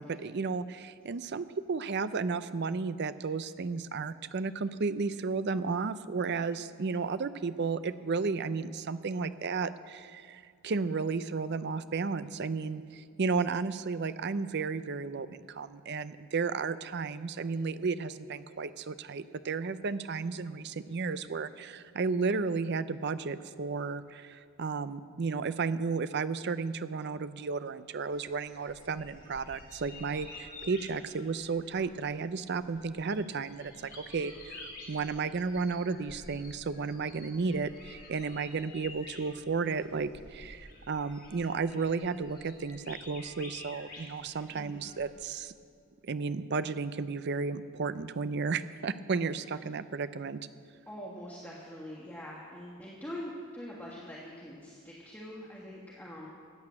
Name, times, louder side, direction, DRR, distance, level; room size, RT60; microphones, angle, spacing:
voice 1, 0.0-45.5 46.0-50.4, right 4 dB, 50° right, 13 dB, 0.5 m, -33 dB
sound 1, 28.1-45.1, left 2 dB, 40° left, 3.1 m, -50 dB
voice 2, 44.5-44.9 50.9-56.3, equal, 10° left, -5 dB, 1.5 m, -44 dB
14.0 x 8.8 x 8.6 m, 2.4 s
head